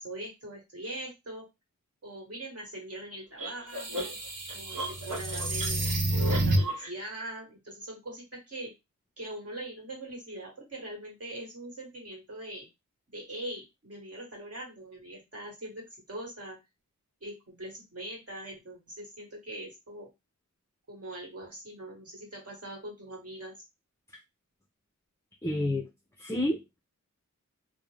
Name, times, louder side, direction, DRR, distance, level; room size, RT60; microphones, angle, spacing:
voice 1, 0.0-1.5 2.0-4.2 4.5-5.8 6.3-8.7 9.2-12.7 13.1-15.8 16.1-16.6 17.2-20.1 20.9-23.5, right 1 dB, 50° right, 0 dB, 1.3 m, -42 dB
sound 1, 3.4-6.9, right 1 dB, 85° right, 0.8 m, -29 dB
voice 2, 25.4-25.9 26.2-26.8, left 1 dB, 10° left, 1 dB, 0.5 m, -30 dB
2.4 x 2.0 x 3.1 m, 0.22 s
wide cardioid pair, 75°, 31 cm